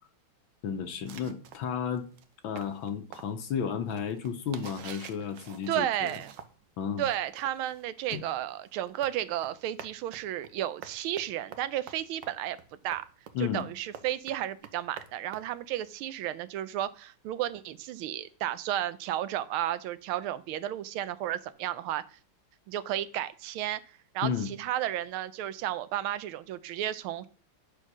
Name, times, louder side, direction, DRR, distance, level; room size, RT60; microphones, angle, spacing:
voice 1, 0.6-2.1 2.4-6.1 6.8-7.1 8.1-8.2 13.3-13.7 24.2-24.5, left 7 dB, 75° left, 1.6 m, -33 dB
sound 1, 1.1-6.7 7.0-16.1, right 8 dB, 70° right, 1.4 m, -49 dB
voice 2, 5.7-6.3 7.0-12.6 12.8-13.0 13.4-22.0 22.7-23.8 24.1-27.3, right 12 dB, 85° right, 1.5 m, -33 dB
10.5 x 4.5 x 6.0 m
omnidirectional pair, 2.3 m